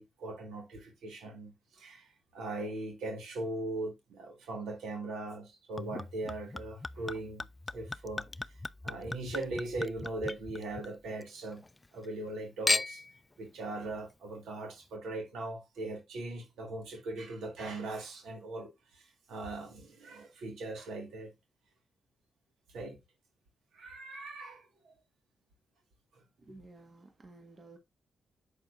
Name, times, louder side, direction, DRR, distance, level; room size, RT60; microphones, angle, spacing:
voice 1, 0.0-7.4 7.7-8.3 8.8-11.6 11.9-13.0 13.4-21.3 22.7-23.0 23.7-24.9, right 2 dB, 80° right, 1.8 m, -40 dB
Chink clink / Liquid, 5.8-11.3 11.6-12.3 12.7-13.2 13.9-14.0, left 2 dB, 25° left, 0.3 m, -37 dB
voice 2, 26.4-27.8, right 2 dB, 45° right, 1.6 m, -53 dB
7.8 x 6.1 x 2.6 m
supercardioid pair, 60°, 0 cm